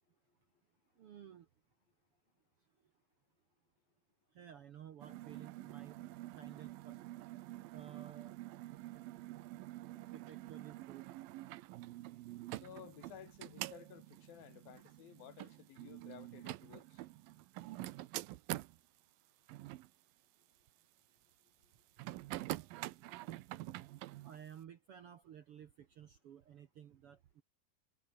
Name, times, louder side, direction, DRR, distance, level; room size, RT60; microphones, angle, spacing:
voice 1, 1.0-1.5 4.3-6.0 6.3-7.0 7.7-8.4 10.1-11.1 22.0-22.1 24.2-27.4, right 9 dB, 65° right, 1.4 m, -54 dB
sound 1, 5.0-18.8 19.5-19.9 22.0-24.4, right 17 dB, 85° right, 2.6 m, -47 dB
voice 2, 12.5-17.0, left 10 dB, 85° left, 3.8 m, -55 dB
omnidirectional pair, 4.0 m